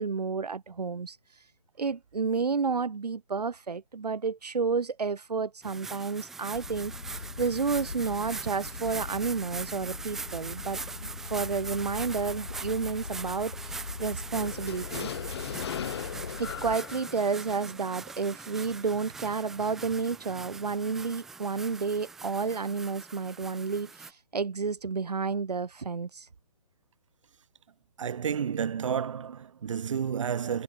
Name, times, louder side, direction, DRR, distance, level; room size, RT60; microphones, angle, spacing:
voice 1, 0.0-1.4 1.8-15.1 16.4-26.3, right 5 dB, 80° right, 2.3 m, -31 dB
sound 1, 5.6-24.1, right 4 dB, ahead, 0.4 m, -42 dB
sound 2, 6.5-16.8, left 4 dB, 90° left, 2.0 m, -41 dB
sound 3, 14.3-18.4, left 9 dB, 40° left, 1.5 m, -38 dB
voice 2, 28.0-30.6, right 7 dB, 50° right, 3.3 m, -31 dB
hypercardioid pair, 160°, 20 cm